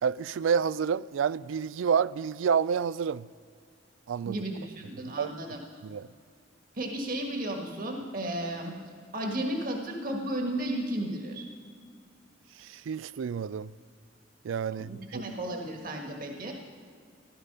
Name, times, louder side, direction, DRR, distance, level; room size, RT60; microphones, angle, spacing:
voice 1, 0.0-3.3 4.1-4.4 5.2-5.4 5.8-6.1 12.6-13.7 14.4-15.2, right 7 dB, 85° right, 0.3 m, -29 dB
voice 2, 4.2-5.6 6.7-8.7 9.1-11.5 14.9-16.5, right 1 dB, 50° right, 1.6 m, -33 dB
15.0 x 13.0 x 5.5 m
head